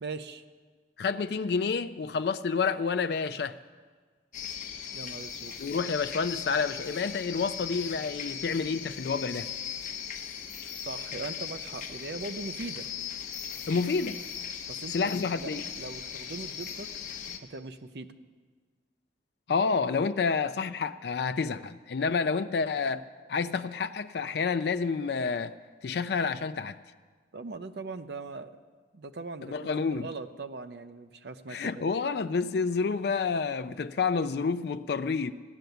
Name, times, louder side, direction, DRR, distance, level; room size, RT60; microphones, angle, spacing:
voice 1, 0.0-0.4 4.9-5.5 10.8-12.9 14.7-16.9 17.4-18.1 27.3-28.5 28.9-31.8, right 3 dB, 60° right, 0.6 m, -40 dB
voice 2, 1.0-3.5 5.6-9.5 13.7-14.2 14.9-15.6 19.5-23.0 23.3-25.6 25.8-26.8 29.4-30.1 31.5-35.3, left 5 dB, 60° left, 0.4 m, -29 dB
sound 1, 4.3-17.4, left 8 dB, 45° left, 0.9 m, -39 dB
14.5 x 6.8 x 9.2 m
head